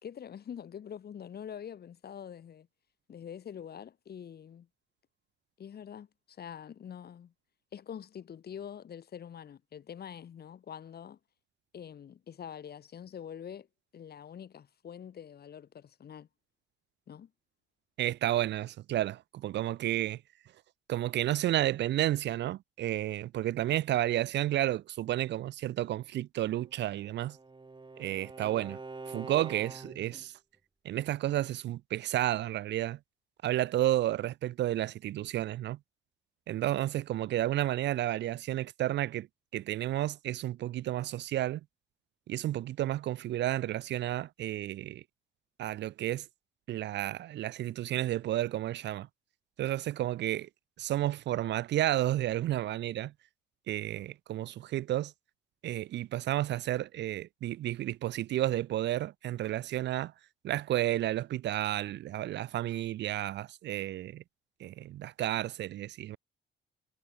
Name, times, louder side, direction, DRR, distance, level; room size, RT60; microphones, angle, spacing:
voice 1, 0.0-2.7 3.1-4.7 5.6-7.3 7.7-11.2 11.7-13.7 13.9-16.3 17.1-17.3, left 8 dB, 55° left, 1.9 m, -45 dB
voice 2, 18.0-20.2 20.9-27.4 28.0-28.8 29.1-30.3 30.8-33.0 33.4-35.8 36.5-39.3 39.5-41.6 42.3-45.0 45.6-46.3 46.7-49.1 49.6-50.5 50.8-53.1 53.7-55.1 55.6-60.1 60.4-64.2 64.6-66.2, right 13 dB, 60° right, 0.4 m, -31 dB
Bowed string instrument, 26.6-30.3, right 3 dB, 25° right, 4.5 m, -46 dB
cardioid pair, 90°, 20 cm